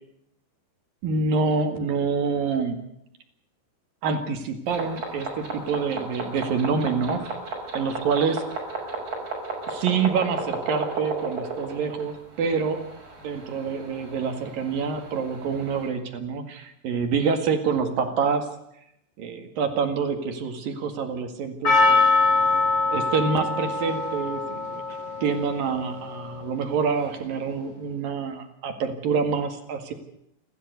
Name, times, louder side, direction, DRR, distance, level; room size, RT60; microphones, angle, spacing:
voice 1, 1.0-2.8 4.0-7.3 7.7-8.4 8.8-9.0 9.7-12.8 13.2-18.5 19.2-22.1 22.9-24.8 25.2-29.9, right 5 dB, 55° right, 6 dB, 3.2 m, -26 dB
sound 1, 4.7-15.9, right 3 dB, 35° right, 7.3 m, -35 dB
Percussion, 21.6-26.6, left 3 dB, 30° left, 8.1 m, -23 dB
28.5 x 13.0 x 8.1 m, 0.77 s
omnidirectional pair, 5.5 m